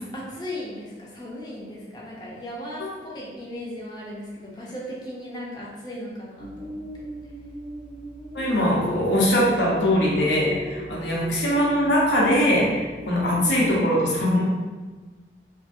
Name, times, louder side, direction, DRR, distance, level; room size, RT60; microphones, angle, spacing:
voice 1, 0.1-6.8, left 1 dB, 25° left, -5 dB, 0.6 m, -36 dB
sound 1, 6.4-13.8, right 1 dB, 45° right, 0.4 m, -37 dB
voice 2, 8.3-14.4, equal, 80° left, -4 dB, 0.7 m, -21 dB
2.7 x 2.5 x 2.5 m, 1.3 s
head